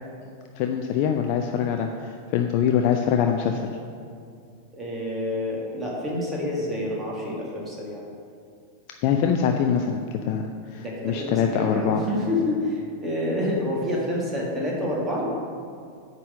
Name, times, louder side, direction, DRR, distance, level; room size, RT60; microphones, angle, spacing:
voice 1, 0.6-3.7 9.0-12.0, left 8 dB, 45° left, 4 dB, 0.4 m, -24 dB
voice 2, 4.7-8.0 10.8-15.3, left 1 dB, 15° right, -4 dB, 1.8 m, -28 dB
9.6 x 4.1 x 6.3 m, 2.3 s
figure-of-eight pair, 90°, 0 cm